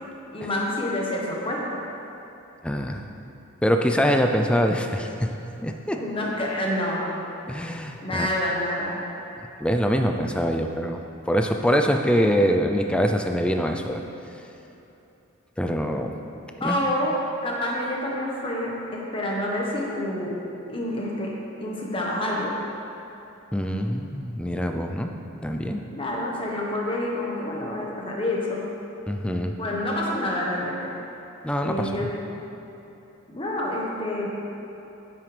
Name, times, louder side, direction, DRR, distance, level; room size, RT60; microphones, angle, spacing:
voice 1, 0.3-1.8 5.9-7.1 8.0-9.0 16.6-17.1 17.4-20.3 20.7-21.3 21.6-22.5 25.9-28.6 29.6-30.9 31.6-32.1 33.3-34.3, left 1 dB, 25° left, -3 dB, 1.2 m, -28 dB
voice 2, 2.6-3.0 3.6-5.3 5.6-6.0 7.5-8.3 9.6-11.0 11.3-14.0 15.6-16.1 16.6-16.9 23.5-25.1 25.4-25.8 29.1-29.6 31.4-32.1, equal, 5° left, 4 dB, 0.4 m, -24 dB
9.3 x 8.7 x 3.3 m, 3.0 s
head